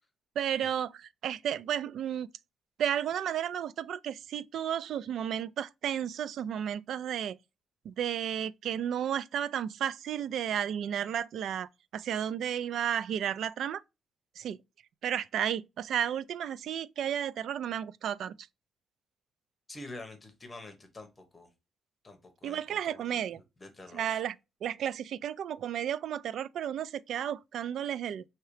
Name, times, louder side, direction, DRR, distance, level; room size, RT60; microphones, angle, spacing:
voice 1, 0.4-2.3 2.8-7.4 7.8-13.8 14.4-14.6 15.0-18.3 22.4-23.4 23.9-24.4 24.6-28.2, right 9 dB, 65° right, 0.3 m, -33 dB
voice 2, 19.7-21.5 22.0-23.3 23.6-24.2, left 2 dB, 20° left, 1.0 m, -47 dB
5.6 x 2.9 x 3.2 m
cardioid pair, 150°, 0 cm